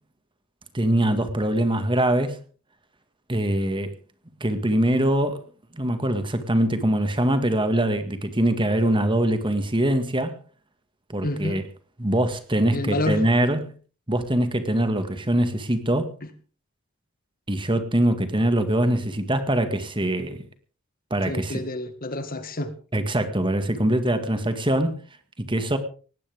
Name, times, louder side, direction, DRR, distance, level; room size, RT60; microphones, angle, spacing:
voice 1, 0.7-2.4 3.3-3.9 4.4-5.4 5.7-10.4 11.1-11.6 12.0-13.7 14.1-16.1 17.5-20.4 21.1-21.6 22.9-25.0 25.4-25.8, right 1 dB, 20° right, 9 dB, 1.9 m, -23 dB
voice 2, 11.2-11.6 12.7-13.2 21.3-22.7, left 1 dB, 40° left, 10 dB, 1.8 m, -28 dB
19.0 x 16.5 x 3.6 m, 0.38 s
head